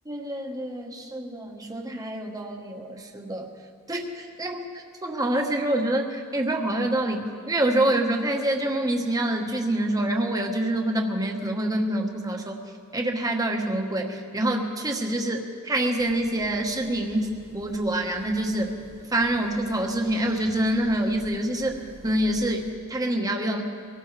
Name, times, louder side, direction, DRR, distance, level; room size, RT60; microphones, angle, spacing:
voice 1, 0.0-3.5 3.9-12.6 12.9-18.7 19.1-23.6, right 1 dB, 15° right, 2 dB, 1.2 m, -26 dB
sound 1, 16.0-22.7, right 1 dB, 80° right, 4.3 m, -48 dB
23.5 x 18.0 x 3.3 m, 2.2 s
head